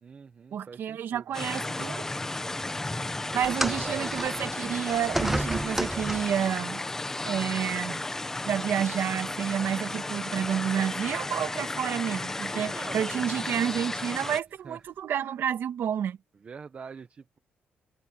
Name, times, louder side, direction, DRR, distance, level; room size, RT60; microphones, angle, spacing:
voice 1, 0.0-1.2 3.1-4.3 12.5-13.2 14.6-14.8 16.4-17.4, right 5 dB, 35° right, 1.4 m, -44 dB
voice 2, 0.5-2.1 3.3-6.8 7.3-8.0 8.5-16.2, right 9 dB, 70° right, 2.1 m, -30 dB
sound 1, 1.3-14.4, left 2 dB, 10° left, 1.4 m, -34 dB
sound 2, 3.4-6.5 7.5-7.6 8.5-8.6, right 1 dB, 5° right, 0.4 m, -32 dB
sound 3, 7.9-14.1, left 6 dB, 45° left, 1.5 m, -48 dB
cardioid pair, 135°, 4 cm